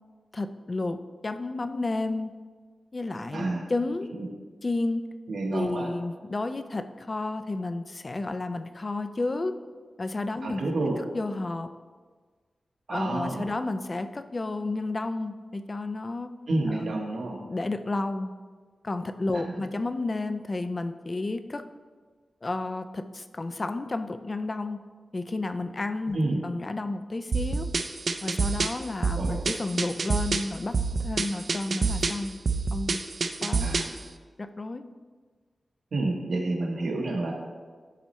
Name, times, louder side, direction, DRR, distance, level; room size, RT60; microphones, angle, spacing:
voice 1, 0.3-2.3 2.9-4.1 4.6-5.0 5.5-9.6 10.0-10.6 11.1-11.7 12.9-16.3 16.7-16.9 17.3-18.3 18.8-21.6 22.4-24.8 25.1-27.7 28.2-32.4 32.7-33.0 33.4-33.8 34.4-34.8, left 2 dB, 35° left, 10 dB, 0.3 m, -31 dB
voice 2, 3.3-3.6 4.1-4.3 5.3-5.9 10.4-11.0 12.9-13.5 16.5-17.4 26.1-26.4 29.1-29.4 33.6-33.9 35.9-37.3, right 2 dB, 75° right, 0 dB, 1.1 m, -29 dB
sound 1, 27.3-34.0, right 4 dB, 60° right, 0.4 m, -28 dB
10.5 x 4.2 x 3.1 m, 1.5 s
wide cardioid pair, 125°, 0 cm